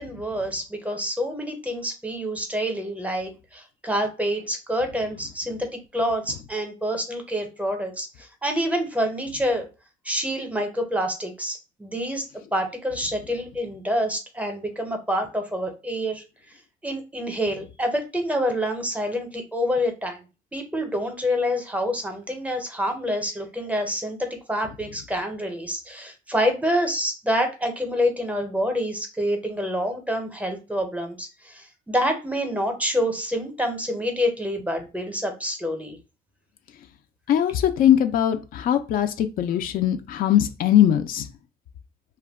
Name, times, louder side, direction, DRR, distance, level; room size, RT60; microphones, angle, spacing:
voice 1, 0.0-5.7 5.9-9.7 10.0-12.3 12.5-16.2 16.8-20.2 20.5-36.0, equal, 10° right, 5 dB, 0.6 m, -27 dB
voice 2, 37.3-41.3, left 10 dB, 60° left, 7 dB, 0.4 m, -20 dB
2.2 x 2.1 x 3.4 m, 0.30 s
cardioid pair, 110°, 17 cm